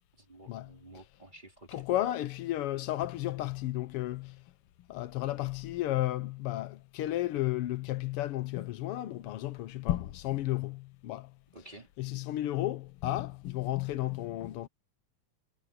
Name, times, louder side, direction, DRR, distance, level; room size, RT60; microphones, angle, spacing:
voice 1, 0.2-1.8 11.5-11.9, right 1 dB, 15° right, 3.1 m, -52 dB
voice 2, 1.7-4.4 4.9-11.3 12.0-14.7, left 15 dB, 80° left, 1.3 m, -33 dB
omnidirectional pair, 3.6 m